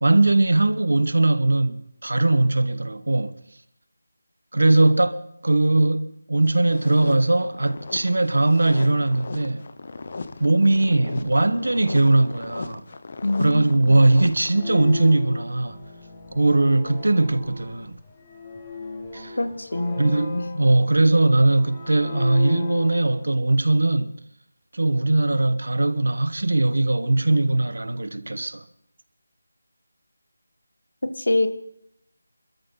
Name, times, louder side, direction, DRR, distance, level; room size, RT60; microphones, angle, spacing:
voice 1, 0.0-3.3 4.5-9.7 10.4-12.8 13.4-15.8 16.3-17.9 19.1-19.4 20.0-24.1 24.7-28.6, right 2 dB, 75° right, 1.3 m, -20 dB
sound 1, 6.5-15.1, left 3 dB, 30° left, 0.8 m, -37 dB
voice 2, 13.2-14.0 19.4-20.5 31.0-31.5, left 2 dB, 85° left, 1.7 m, -25 dB
sound 2, 14.3-23.3, left 4 dB, 10° left, 1.1 m, -37 dB
24.5 x 13.5 x 4.0 m
figure-of-eight pair, 180°, 0 cm